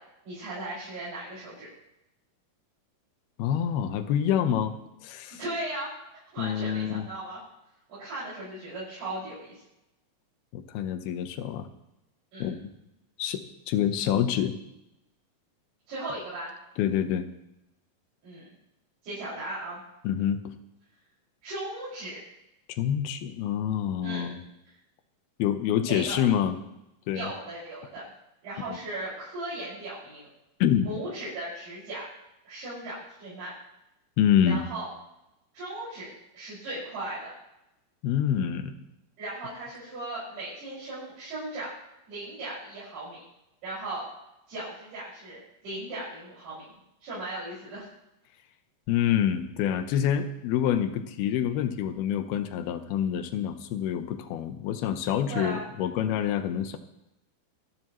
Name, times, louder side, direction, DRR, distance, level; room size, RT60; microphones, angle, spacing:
voice 1, 0.2-1.7 5.3-7.4 7.9-9.6 12.3-12.5 15.9-16.5 18.2-18.5 19.0-19.8 21.4-22.2 24.0-24.3 25.9-26.2 27.1-28.1 28.4-30.3 30.8-32.1 32.5-33.5 34.4-34.9 35.5-37.3 39.2-41.7 42.1-43.2 43.6-44.1 44.5-46.7 47.0-47.9 55.3-55.6, right 1 dB, 90° right, -10 dB, 8.0 m, -37 dB
voice 2, 3.4-4.7 5.0-5.4 6.4-7.0 10.5-11.7 12.4-12.7 13.2-14.5 16.8-17.3 20.0-20.4 22.7-24.4 25.4-26.6 27.1-27.3 28.7-28.8 30.6-30.9 34.2-34.6 38.0-38.7 48.9-56.8, left 9 dB, 80° left, 8 dB, 2.9 m, -27 dB
25.0 x 11.5 x 3.1 m, 0.88 s
omnidirectional pair, 4.4 m